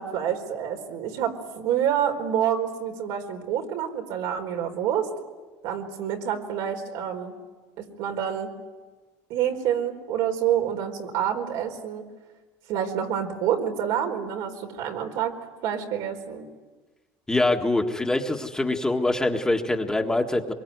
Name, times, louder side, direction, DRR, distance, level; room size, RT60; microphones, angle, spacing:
voice 1, 0.0-5.1 5.6-7.3 7.8-8.5 9.3-12.0 12.7-15.3 15.6-16.5, right 9 dB, 75° right, 3 dB, 4.5 m, -27 dB
voice 2, 17.3-20.5, left 2 dB, 10° left, 3 dB, 1.7 m, -24 dB
25.0 x 23.0 x 9.6 m, 1.3 s
cardioid pair, 145°, 8 cm